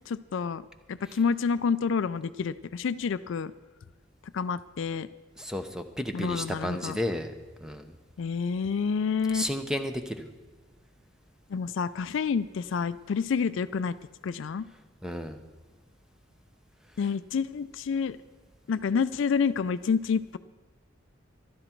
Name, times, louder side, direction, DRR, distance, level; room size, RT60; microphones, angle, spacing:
voice 1, 0.1-0.6 0.9-3.5 4.3-5.1 6.1-7.0 8.2-9.5 11.5-14.0 14.2-14.7 17.0-18.2 18.7-20.4, left 5 dB, 70° left, 14 dB, 0.4 m, -28 dB
voice 2, 5.4-7.3 7.6-8.0 9.3-10.3 15.0-15.4, equal, 5° right, 7 dB, 0.7 m, -32 dB
14.0 x 12.0 x 4.5 m, 1.3 s
head